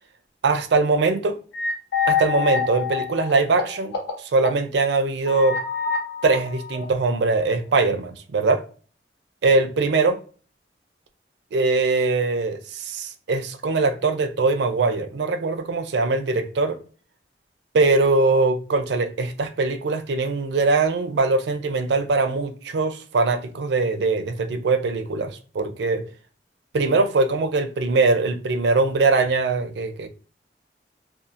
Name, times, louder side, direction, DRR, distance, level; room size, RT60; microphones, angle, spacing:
voice 1, 0.4-1.4 2.1-5.6 6.2-8.6 9.4-10.2 11.5-16.8 17.7-26.0 26.7-30.1, right 3 dB, 80° right, 0.4 m, -22 dB
sound 1, 1.5-4.1 4.4-4.5 5.3-7.4, left 6 dB, 85° left, 1.5 m, -27 dB
2.6 x 2.3 x 2.4 m
head